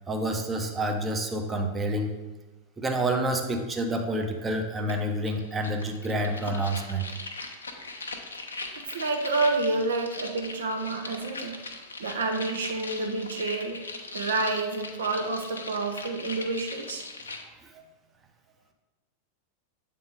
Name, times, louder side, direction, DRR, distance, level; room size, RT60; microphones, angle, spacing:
voice 1, 0.0-2.2 2.8-7.1 17.6-17.8, right 1 dB, 15° right, 4 dB, 0.7 m, -28 dB
sound 1, 4.9-5.0 5.3-17.4, left 3 dB, 75° left, 0.6 m, -40 dB
voice 2, 8.8-11.6 12.0-17.1, right 3 dB, 65° right, 4 dB, 0.6 m, -29 dB
7.8 x 3.7 x 3.9 m, 1.2 s
figure-of-eight pair, 90°, 0 cm